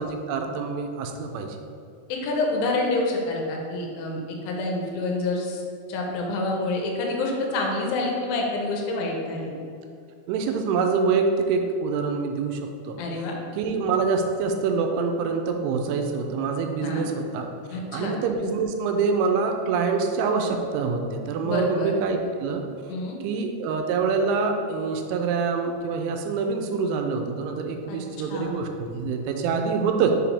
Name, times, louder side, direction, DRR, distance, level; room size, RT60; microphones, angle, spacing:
voice 1, 0.0-1.6 10.3-12.6 12.9-13.0 13.6-17.5 17.9-22.6 23.2-30.1, right 5 dB, 85° right, 4 dB, 3.0 m, -25 dB
voice 2, 2.1-5.6 5.9-9.5 13.0-13.4 16.8-17.1 17.7-18.1 21.4-21.9 22.9-23.2 27.9-28.0 28.3-28.5, left 2 dB, 85° left, 0 dB, 3.1 m, -27 dB
6.9 x 4.9 x 3.4 m, 2.4 s
omnidirectional pair, 5.4 m